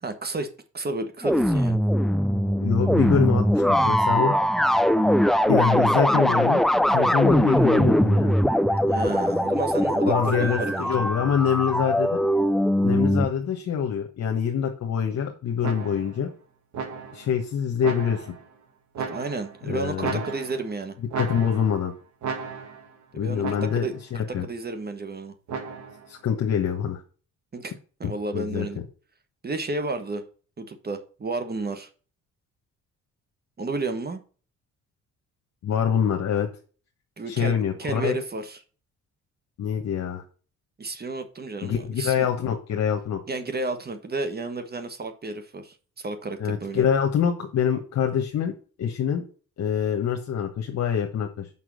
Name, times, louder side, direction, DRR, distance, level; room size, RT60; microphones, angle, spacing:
voice 1, 0.0-0.5 0.7-1.8 8.9-11.0 19.1-21.0 23.1-25.3 27.5-27.7 28.0-28.8 29.4-30.2 30.6-31.9 33.6-34.2 37.2-38.6 40.8-42.3 43.3-46.8, right 3 dB, 30° right, 1.4 m, -32 dB
sound 1, 1.2-13.3, equal, ahead, 0.4 m, -21 dB
voice 2, 2.6-4.3 5.5-8.4 10.0-12.2 12.8-16.3 17.1-18.3 19.7-20.2 21.2-21.9 23.2-24.5 26.1-27.0 28.3-28.7 35.6-36.5 37.3-38.1 39.6-40.2 41.6-43.2 46.4-48.5 48.8-49.2 49.6-51.5, left 8 dB, 65° left, 1.2 m, -25 dB
sound 2, 15.6-16.2 16.7-17.3 17.8-18.5 19.0-19.6 20.0-20.8 21.1-21.8 22.2-22.9 23.4-24.0 25.5-26.1, right 5 dB, 70° right, 2.1 m, -34 dB
6.1 x 5.6 x 6.4 m
cardioid pair, 90°, 30 cm